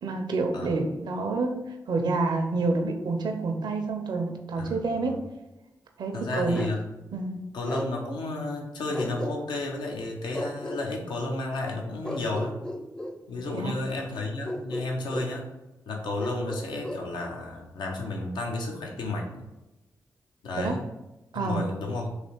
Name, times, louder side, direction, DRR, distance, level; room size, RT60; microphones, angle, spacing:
voice 1, 0.0-5.1 6.0-6.6 7.1-7.4 13.5-13.7 20.6-20.8 21.3-21.6, right 3 dB, 75° right, 4 dB, 0.5 m, -28 dB
voice 2, 4.6-5.1 6.1-6.8 7.5-12.6 13.3-15.5 15.9-19.5 20.4-20.8 21.3-22.1, left 2 dB, 85° left, 1 dB, 0.7 m, -32 dB
Bark, 6.5-6.8 7.7-7.9 8.9-9.7 10.3-10.8 12.0-13.2 14.4-15.3 16.2-17.1, left 1 dB, 10° left, 0.5 m, -34 dB
3.2 x 2.8 x 4.4 m, 1.0 s
supercardioid pair, 40°, 8 cm